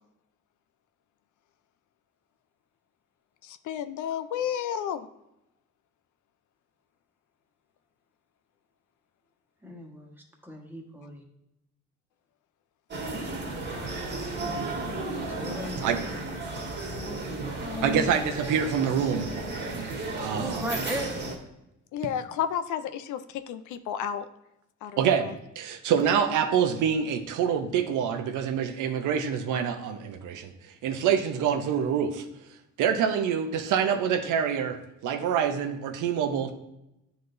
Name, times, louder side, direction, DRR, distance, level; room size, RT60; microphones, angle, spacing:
voice 1, 3.4-5.1 21.9-24.3 24.8-25.4, left 9 dB, 75° left, 11 dB, 0.5 m, -32 dB
voice 2, 9.6-10.1 10.4-11.2 15.2-16.1 17.5-18.1 20.3-21.2, equal, 5° right, 0 dB, 1.3 m, -36 dB
sound 1, 12.9-21.3, right 2 dB, 35° right, 1.6 m, -34 dB
voice 3, 17.8-19.3 19.7-19.9 20.2-20.6 25.0-25.3 25.6-32.2 32.8-36.5, right 8 dB, 85° right, 6 dB, 0.7 m, -26 dB
9.4 x 4.0 x 2.6 m, 0.87 s
cardioid pair, 90°, 30 cm